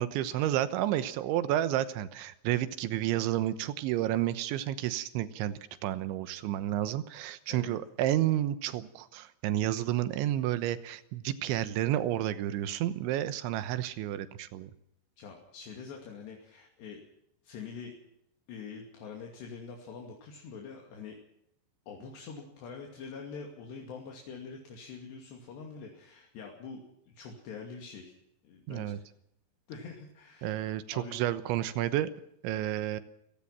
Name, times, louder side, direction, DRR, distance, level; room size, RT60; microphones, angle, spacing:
voice 1, 0.0-14.7 28.7-29.0 30.4-32.1 32.4-33.0, right 13 dB, 90° right, 13 dB, 3.4 m, -31 dB
voice 2, 15.2-17.0 17.4-18.0 18.5-21.2 21.9-28.1 28.4-29.0 29.7-31.2, left 5 dB, 65° left, 1 dB, 4.6 m, -45 dB
28.5 x 17.5 x 5.9 m, 0.77 s
omnidirectional pair, 5.3 m